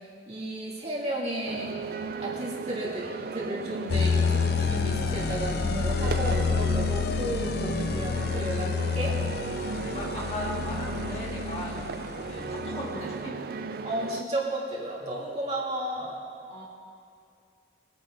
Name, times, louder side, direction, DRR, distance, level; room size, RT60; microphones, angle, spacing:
voice 1, 0.3-1.7 2.2-9.2 13.8-16.2, right 1 dB, 35° right, -6 dB, 2.5 m, -33 dB
sound 1, 1.5-14.2, right 4 dB, 50° right, 0.4 m, -36 dB
sound 2, 3.9-13.1, left 5 dB, 55° left, 0.4 m, -29 dB
voice 2, 9.6-11.9 12.2-13.4 16.5-16.6, left 1 dB, 30° left, -4 dB, 1.8 m, -38 dB
25.0 x 9.7 x 2.6 m, 2.3 s
head